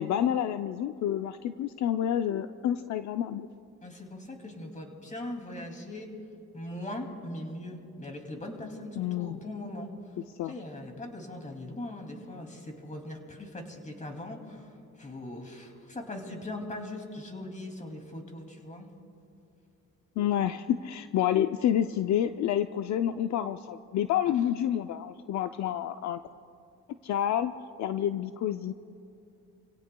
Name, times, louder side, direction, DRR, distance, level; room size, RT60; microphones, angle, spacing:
voice 1, 0.0-3.5 9.0-9.4 10.4-10.5 20.2-26.2 27.0-27.5 27.8-28.7, left 10 dB, 65° left, 9 dB, 0.5 m, -28 dB
voice 2, 3.8-6.1 6.5-9.9 10.4-18.9, left 1 dB, 25° left, 3 dB, 2.5 m, -40 dB
28.5 x 17.0 x 2.2 m, 2.6 s
cardioid pair, 90°, 30 cm